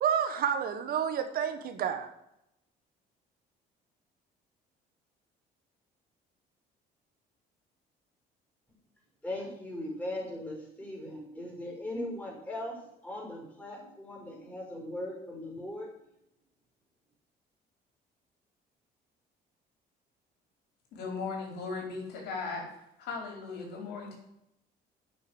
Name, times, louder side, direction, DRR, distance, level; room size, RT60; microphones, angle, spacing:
voice 1, 0.0-2.1, right 8 dB, 60° right, 8 dB, 1.4 m, -29 dB
voice 2, 9.2-15.9, left 1 dB, 10° left, -2 dB, 5.4 m, -39 dB
voice 3, 20.9-22.6 23.0-24.2, left 4 dB, 80° left, 0 dB, 4.2 m, -37 dB
9.0 x 6.6 x 7.9 m, 0.81 s
cardioid pair, 110°, 17 cm